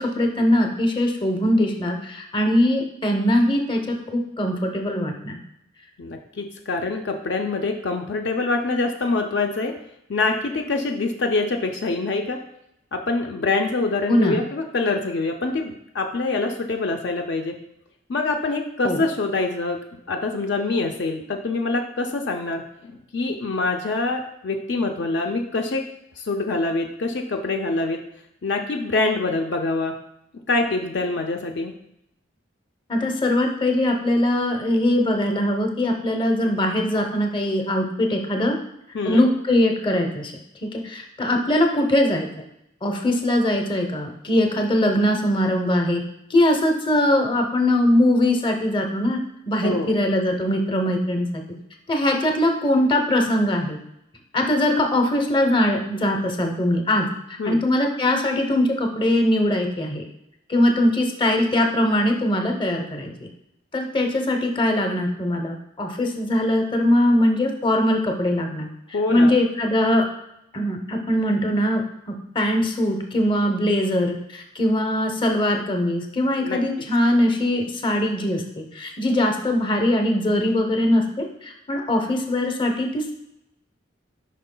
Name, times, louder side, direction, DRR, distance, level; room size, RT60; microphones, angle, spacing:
voice 1, 0.0-5.4 14.1-14.4 18.8-19.0 32.9-38.6 39.0-40.3 40.6-42.3 42.8-46.0 46.3-49.2 49.5-51.3 51.9-53.8 54.3-57.1 57.4-60.0 60.5-63.3 63.7-68.7 69.1-70.1 70.5-71.8 72.1-83.1, left 1 dB, 25° left, 3 dB, 0.7 m, -21 dB
voice 2, 6.0-9.7 10.1-12.4 12.9-17.6 18.1-25.8 26.2-28.0 28.4-30.0 30.5-31.7 38.9-39.3 49.6-49.9 57.4-57.6 68.9-69.3 76.4-76.6, left 3 dB, 60° left, 3 dB, 0.5 m, -25 dB
9.1 x 5.5 x 2.2 m, 0.81 s
head